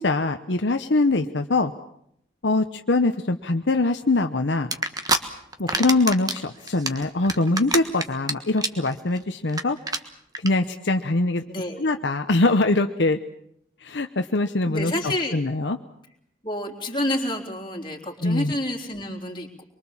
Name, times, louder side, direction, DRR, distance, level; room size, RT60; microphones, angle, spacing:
voice 1, 0.0-1.7 2.4-4.7 5.6-9.8 10.4-11.4 11.8-13.2 13.8-15.8 18.2-18.5, left 2 dB, 65° left, 6 dB, 1.0 m, -23 dB
sound 1, 4.7-5.2 5.5-6.4 6.7-8.3 8.6-8.9 9.2-9.3 9.5-9.6 9.9-10.0 10.3-10.5, right 3 dB, 20° right, 1.4 m, -24 dB
voice 2, 11.5-11.9 14.7-15.4 16.4-19.6, left 1 dB, 25° left, 2 dB, 3.5 m, -29 dB
24.5 x 23.5 x 7.3 m, 0.73 s
head